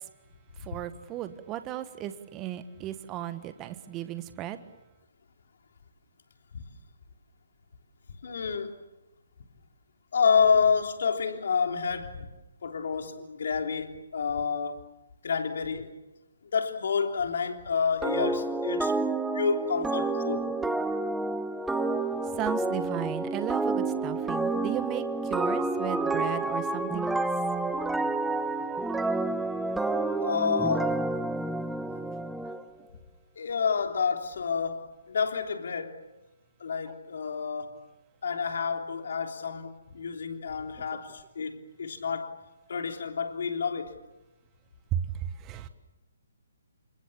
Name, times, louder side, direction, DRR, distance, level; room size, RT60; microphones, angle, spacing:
voice 1, 0.6-4.6 22.3-27.3 44.9-45.0 45.4-45.7, right 12 dB, 20° right, 1.5 m, -35 dB
voice 2, 8.2-8.7 10.1-12.3 12.6-14.8 15.2-15.9 16.5-18.9 19.3-20.5 30.2-31.0 33.3-36.0 36.6-37.8 38.2-42.4 42.7-44.0, left 6 dB, 55° left, 3.4 m, -29 dB
sound 1, 18.0-32.6, right 2 dB, 5° right, 1.0 m, -29 dB
29.5 x 27.5 x 7.3 m
figure-of-eight pair, 135°, 0 cm